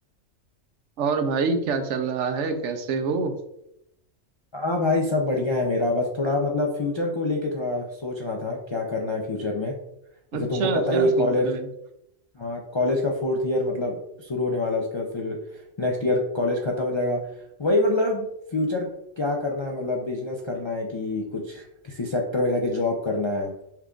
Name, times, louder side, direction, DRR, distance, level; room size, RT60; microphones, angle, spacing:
voice 1, 1.0-3.3 10.3-11.7, right 4 dB, 80° right, 7 dB, 0.9 m, -26 dB
voice 2, 4.5-9.8 10.3-11.5 12.4-15.4 15.8-17.2 17.6-18.9 19.2-23.5, left 2 dB, 45° left, 0 dB, 0.3 m, -25 dB
5.8 x 2.3 x 3.7 m, 0.81 s
omnidirectional pair, 1.2 m